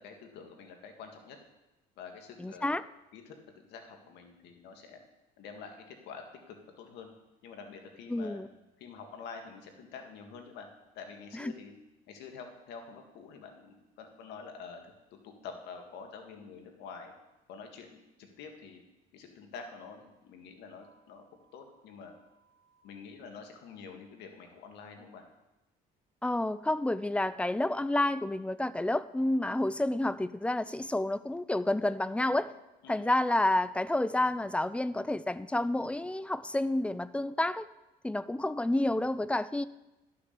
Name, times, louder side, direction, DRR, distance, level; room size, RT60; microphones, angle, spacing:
voice 1, 0.0-1.4 2.0-2.7 3.1-3.4 3.7-5.0 5.4-7.1 7.4-8.4 8.8-10.7 11.0-11.7 12.1-14.9 15.2-17.1 17.5-18.8 19.1-21.2 21.5-22.1 22.8-25.2 32.8-33.1, left 5 dB, 85° left, 4 dB, 1.9 m, -47 dB
voice 2, 2.4-2.8 8.1-8.5 11.3-11.5 26.2-32.5 32.9-37.7 38.0-39.7, left 1 dB, 5° left, 16 dB, 0.4 m, -29 dB
sound 1, 20.8-22.8, right 4 dB, 40° left, 1.7 m, -69 dB
12.0 x 6.8 x 6.8 m, 0.99 s
cardioid pair, 110°, 17 cm